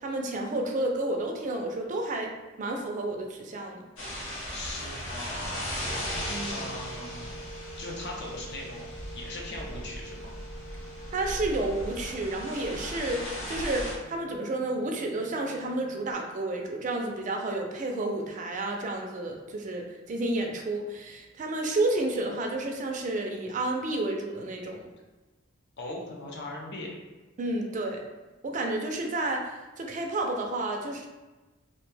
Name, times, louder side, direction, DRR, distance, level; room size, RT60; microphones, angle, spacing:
voice 1, 0.0-2.3 2.6-3.9 6.3-6.7 11.1-24.8 27.4-28.0 28.4-31.0, right 2 dB, 40° right, 2 dB, 0.4 m, -31 dB
sound 1, 4.0-13.9, equal, 90° left, 0.8 m, -37 dB
voice 2, 4.5-5.7 6.5-7.4 7.8-10.3 25.8-27.0, left 1 dB, 55° left, -2 dB, 0.6 m, -39 dB
sound 2, 5.8-16.1, right 1 dB, 20° left, 1.0 m, -47 dB
2.6 x 2.1 x 3.2 m, 1.2 s
head